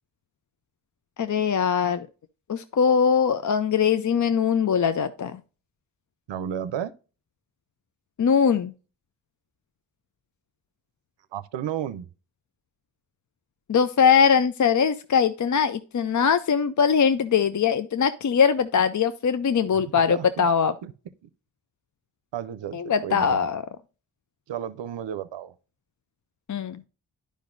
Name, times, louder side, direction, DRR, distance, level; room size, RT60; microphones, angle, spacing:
voice 1, 1.2-2.1 2.5-5.4 8.2-8.7 13.7-20.7 22.7-23.6 26.5-26.8, left 7 dB, 45° left, 0.5 m, -21 dB
voice 2, 6.3-6.9 11.3-12.1 19.9-20.5 20.8-20.9 22.3-23.5 24.5-25.5, right 10 dB, 85° right, 0.6 m, -33 dB
10.5 x 5.1 x 2.5 m
cardioid pair, 40°, 43 cm